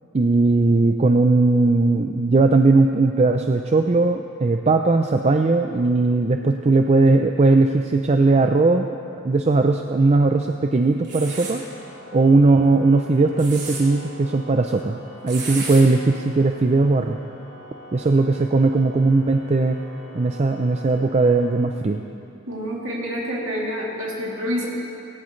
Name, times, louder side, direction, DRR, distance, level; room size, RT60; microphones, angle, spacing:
voice 1, 0.1-8.9 9.2-11.6 12.1-15.0 15.2-17.2 17.9-19.8 20.1-22.0, right 3 dB, 30° right, 5 dB, 0.4 m, -18 dB
sound 1, 11.0-11.6 13.2-13.8 15.3-15.8, right 4 dB, 55° right, 3.5 m, -32 dB
Organ, 11.2-22.1, left 1 dB, 20° left, 3.1 m, -43 dB
voice 2, 22.5-24.7, equal, 70° right, -5 dB, 2.9 m, -27 dB
18.0 x 17.5 x 3.2 m, 2.6 s
head